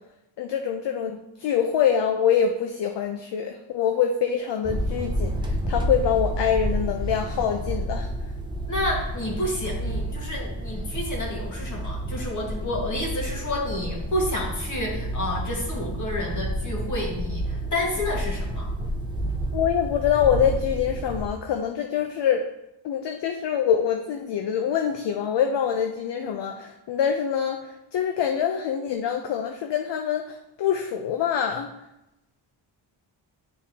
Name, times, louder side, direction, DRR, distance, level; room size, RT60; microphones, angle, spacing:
voice 1, 0.4-8.1 19.5-22.4 22.8-31.7, left 8 dB, 60° left, 4 dB, 0.5 m, -25 dB
sound 1, 4.6-21.3, equal, 10° right, 0.4 m, -30 dB
voice 2, 8.7-18.7, left 1 dB, 40° left, -3 dB, 1.6 m, -30 dB
10.0 x 3.6 x 2.8 m, 0.91 s
wide cardioid pair, 160°, 48 cm